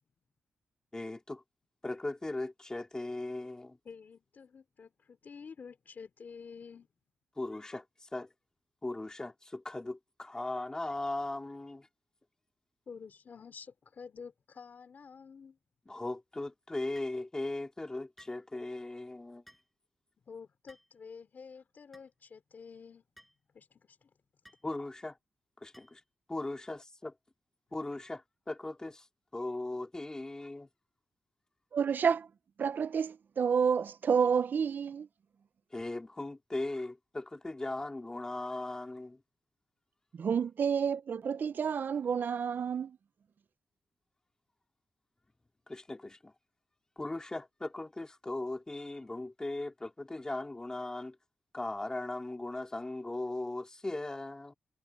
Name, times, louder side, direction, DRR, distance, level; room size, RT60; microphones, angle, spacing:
voice 1, 0.9-1.4 1.8-3.8 7.4-8.3 8.8-11.9 15.9-19.4 24.6-25.2 25.6-26.0 26.3-27.1 27.7-29.1 29.3-30.7 35.7-39.2 45.7-46.3 47.0-51.2 51.5-54.5, left 2 dB, 20° left, 2.9 m, -38 dB
voice 2, 3.8-6.9 12.9-15.6 20.3-23.0 23.5-24.1, left 5 dB, 50° left, 2.9 m, -49 dB
sound 1, 16.9-17.2 18.2-18.4 19.5-19.7 20.7-21.0 21.9-22.1 23.2-23.4 24.4-24.7 25.7-26.0, equal, ahead, 7.9 m, -58 dB
voice 3, 31.7-32.3 32.6-35.1 40.1-43.0, right 6 dB, 55° right, 0.5 m, -29 dB
cardioid pair, 105°, 4 cm